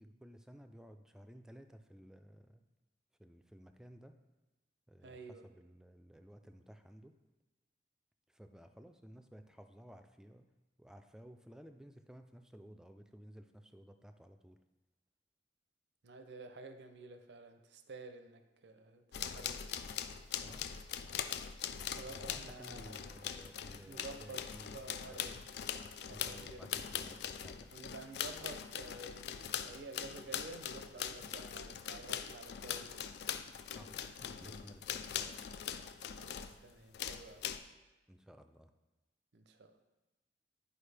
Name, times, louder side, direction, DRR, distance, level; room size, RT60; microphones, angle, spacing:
voice 1, 0.0-2.6 3.2-4.2 4.9-7.2 8.3-10.5 10.8-14.6 20.4-20.7 22.0-24.8 25.0-25.4 26.1-27.7 33.7-35.4 38.1-38.7, equal, 5° right, 7 dB, 0.3 m, -56 dB
voice 2, 5.0-5.5 16.0-19.7 21.9-23.0 23.8-24.4 24.7-25.3 26.0-26.9 27.7-33.1 36.2-37.5 39.3-39.8, right 3 dB, 85° right, 8 dB, 0.6 m, -51 dB
sound 1, 19.1-36.6 36.9-37.6, left 8 dB, 70° left, 0.4 m, -42 dB
10.0 x 4.7 x 3.3 m, 1.1 s
head